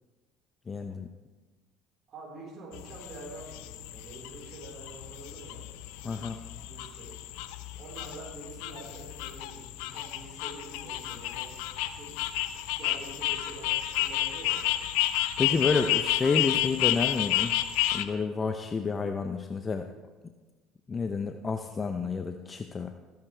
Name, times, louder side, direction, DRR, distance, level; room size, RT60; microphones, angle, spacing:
voice 1, 0.7-1.1 6.0-6.4 15.4-17.6 17.9-19.9 20.9-22.9, left 4 dB, 30° left, 7 dB, 0.6 m, -29 dB
voice 2, 2.1-5.6 6.0-6.3 6.6-7.1 7.8-12.1 12.5-14.6, right 2 dB, 50° right, -5 dB, 4.3 m, -46 dB
sound 1, 2.7-18.0, left 14 dB, 80° left, 0.6 m, -31 dB
15.0 x 10.5 x 3.4 m, 1.3 s
supercardioid pair, 80°, 0 cm